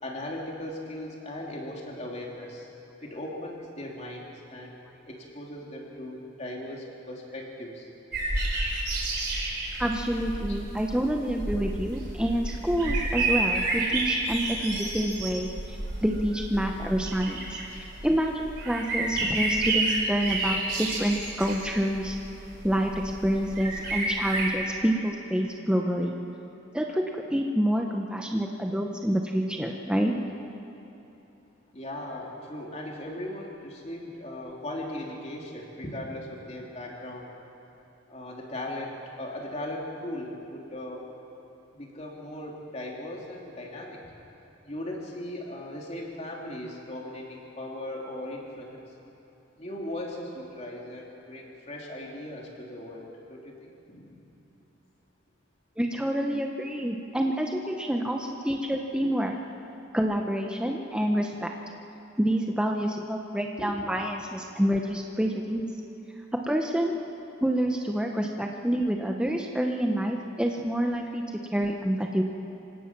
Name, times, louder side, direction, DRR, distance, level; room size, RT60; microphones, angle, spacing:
voice 1, 0.0-2.7 3.0-7.9 10.5-10.6 31.7-37.3 38.1-41.1 41.7-44.0 44.6-48.8 49.6-54.2 63.6-63.9, left 1 dB, 35° left, -1 dB, 3.0 m, -38 dB
sound 1, 8.1-24.5, right 2 dB, 55° right, 4.9 m, -30 dB
voice 2, 9.8-22.2 22.6-22.9 23.2-26.1 26.7-30.1 55.8-59.4 59.9-61.5 62.2-65.7 66.5-67.0 67.4-71.2 71.5-72.2, equal, 5° right, 2 dB, 0.8 m, -27 dB
27.0 x 17.0 x 6.0 m, 3.0 s
head